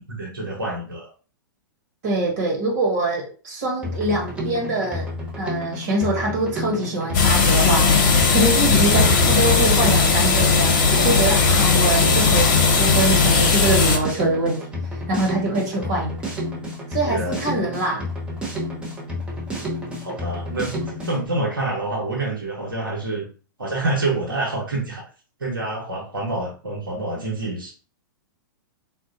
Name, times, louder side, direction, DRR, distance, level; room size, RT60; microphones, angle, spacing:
voice 1, 0.1-1.1 17.0-17.4 19.5-19.7 20.0-23.2 23.6-25.0 25.4-27.7, right 2 dB, 80° right, -3 dB, 1.0 m, -27 dB
voice 2, 2.0-5.1 5.4-7.9 8.3-14.7 15.1-16.2 16.9-18.0, right 2 dB, 55° right, 0 dB, 1.3 m, -24 dB
Drum kit, 3.8-21.3, left 1 dB, 10° right, 0.9 m, -30 dB
sound 1, 7.1-14.0, left 4 dB, 50° left, 1.0 m, -17 dB
3.9 x 2.4 x 2.6 m, 0.37 s
figure-of-eight pair, 105°, 11 cm